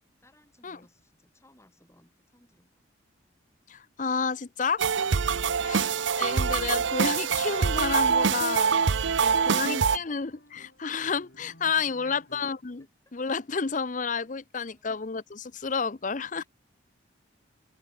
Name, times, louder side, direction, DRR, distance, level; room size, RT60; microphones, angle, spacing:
voice 1, 0.2-2.8 9.1-9.9 11.8-12.2 13.1-13.2 14.7-14.9 16.4-16.5, left 1 dB, 15° left, 7.1 m, -59 dB
voice 2, 3.7-4.8 5.6-5.9 6.2-8.7 9.2-12.9 13.1-16.4, left 5 dB, 40° left, 0.6 m, -30 dB
sound 1, 4.8-10.0, right 6 dB, 70° right, 0.6 m, -24 dB
sound 2, 5.6-12.7, left 2 dB, 55° left, 6.6 m, -56 dB
head